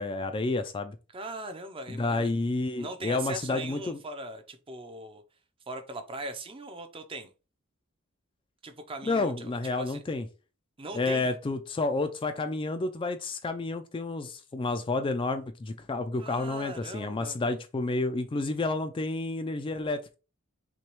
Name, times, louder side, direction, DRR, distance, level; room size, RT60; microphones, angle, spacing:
voice 1, 0.0-1.0 1.9-4.0 9.1-10.3 10.9-20.0, left 3 dB, 25° left, 0.4 m, -30 dB
voice 2, 1.1-2.3 2.8-5.2 5.7-7.3 8.6-10.0 10.8-11.3 16.2-17.6, right 2 dB, 25° right, 0.6 m, -40 dB
6.0 x 2.3 x 3.0 m
head